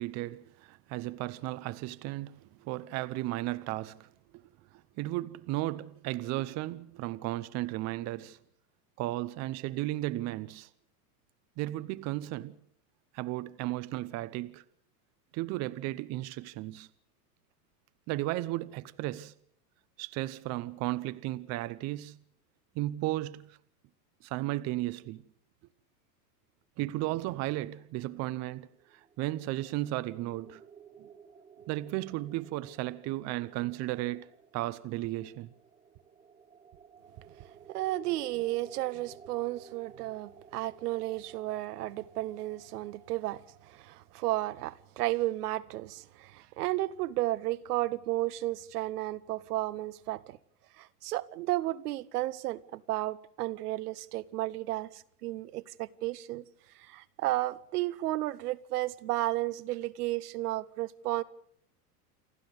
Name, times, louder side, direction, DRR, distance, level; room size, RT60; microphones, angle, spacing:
voice 1, 0.0-8.4 9.0-10.7 11.6-12.6 13.1-14.6 15.3-16.9 18.1-19.3 20.0-22.2 22.7-23.6 24.2-25.2 26.8-30.6 31.0-31.1 31.7-34.3 34.5-35.5, right 17 dB, 35° right, 0.7 m, -35 dB
sound 1, 28.5-45.3, right 7 dB, 15° right, 1.0 m, -55 dB
voice 2, 37.7-50.4 50.8-56.4 56.9-61.2, right 16 dB, 70° right, 1.1 m, -33 dB
28.0 x 11.5 x 8.0 m
supercardioid pair, 130°, 47 cm